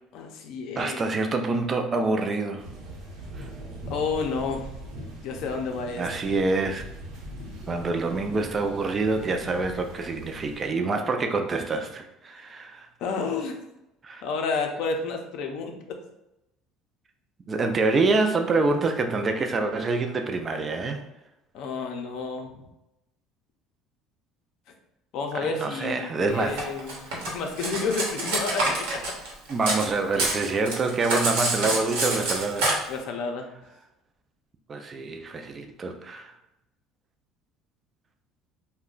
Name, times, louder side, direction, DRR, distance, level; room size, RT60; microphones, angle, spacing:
voice 1, 0.1-1.0 3.9-4.7 5.2-6.1 13.0-13.5 14.2-16.0 21.5-22.5 25.1-27.0 27.3-29.1 32.9-33.5, left 4 dB, 65° left, 3 dB, 0.5 m, -30 dB
voice 2, 0.8-2.7 3.4-3.5 6.0-6.8 7.7-12.9 14.0-14.2 17.5-21.0 25.4-26.7 29.5-32.7 34.7-36.3, right 3 dB, 30° right, 5 dB, 0.3 m, -26 dB
sound 1, 2.6-10.7, right 1 dB, 60° right, 0.8 m, -41 dB
Cutlery silverware, 26.6-29.9 30.1-32.7, right 2 dB, 90° right, 0.9 m, -27 dB
2.4 x 2.1 x 3.7 m, 0.89 s
cardioid pair, 115°, 0 cm